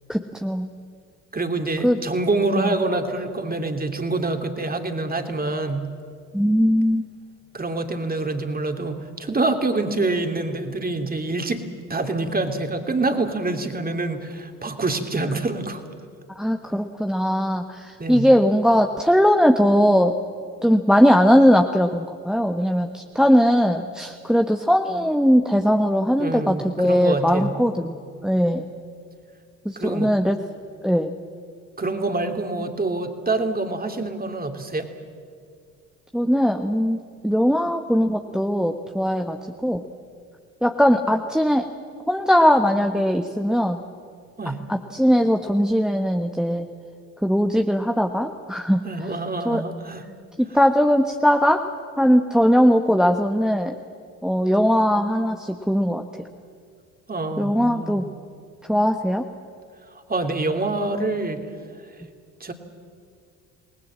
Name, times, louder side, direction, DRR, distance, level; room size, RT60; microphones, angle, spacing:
voice 1, 0.1-0.7 1.8-2.0 2.6-2.7 6.3-7.1 16.4-20.1 20.6-28.0 28.2-28.7 29.6-30.4 30.8-31.1 36.1-37.0 37.2-39.4 39.6-39.8 40.6-41.7 42.1-43.8 44.7-46.7 47.2-48.8 49.4-49.6 50.4-51.6 52.0-53.7 54.2-56.0 57.4-58.1 58.7-59.2, equal, ahead, 5 dB, 1.2 m, -19 dB
voice 2, 1.3-5.9 7.5-11.6 11.9-15.8 18.0-18.3 26.2-27.5 29.8-30.1 31.8-34.9 44.4-44.6 48.8-50.0 57.1-58.0 59.9-61.4 62.4-62.5, right 2 dB, 20° right, 6 dB, 2.8 m, -26 dB
28.0 x 19.5 x 7.5 m, 2.2 s
figure-of-eight pair, 55°, 41 cm